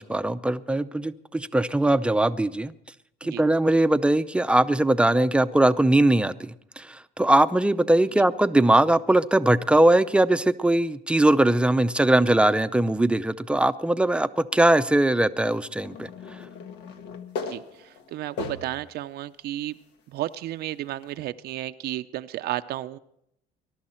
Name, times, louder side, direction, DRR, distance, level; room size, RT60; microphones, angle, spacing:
voice 1, 0.0-2.7 3.2-16.1, right 1 dB, 5° right, 0.5 m, -21 dB
sound 1, 15.8-18.9 19.5-19.6 21.0-21.1, left 5 dB, 80° left, 1.5 m, -37 dB
voice 2, 17.4-19.8 20.1-23.0, right 14 dB, 70° right, 0.5 m, -33 dB
21.0 x 12.0 x 4.4 m
cardioid pair, 110°, 17 cm